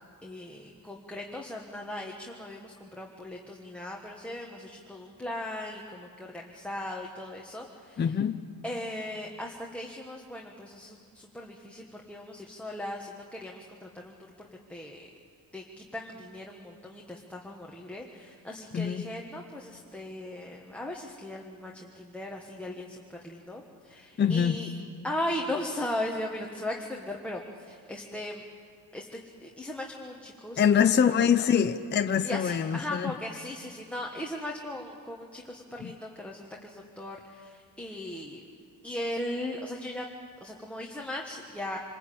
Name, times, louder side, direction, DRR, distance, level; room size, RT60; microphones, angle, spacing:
voice 1, 0.2-8.1 8.6-15.1 15.5-24.7 25.0-28.4 28.9-30.7 31.1-31.5 32.2-38.4 38.8-40.1 40.4-41.8, left 1 dB, 5° left, -1 dB, 1.4 m, -38 dB
voice 2, 8.0-8.4 18.7-19.0 24.2-24.6 30.6-33.1 35.8-35.9, left 7 dB, 30° left, 7 dB, 0.6 m, -24 dB
26.5 x 21.5 x 8.5 m, 2.5 s
wide cardioid pair, 170°, 38 cm